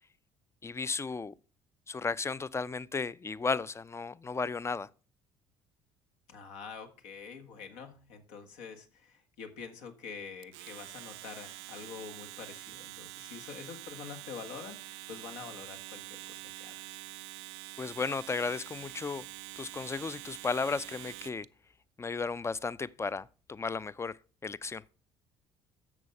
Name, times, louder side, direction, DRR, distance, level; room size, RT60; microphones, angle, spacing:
voice 1, 0.6-1.3 1.9-4.9 17.8-19.2 19.6-21.5 22.0-24.2 24.4-24.8, left 4 dB, 20° left, 0.5 m, -34 dB
voice 2, 6.3-17.0, left 6 dB, 75° left, 1.8 m, -46 dB
Domestic sounds home sounds, 10.4-21.5, right 19 dB, 75° right, 0.4 m, -46 dB
11.0 x 7.0 x 5.4 m
hypercardioid pair, 55°, 14 cm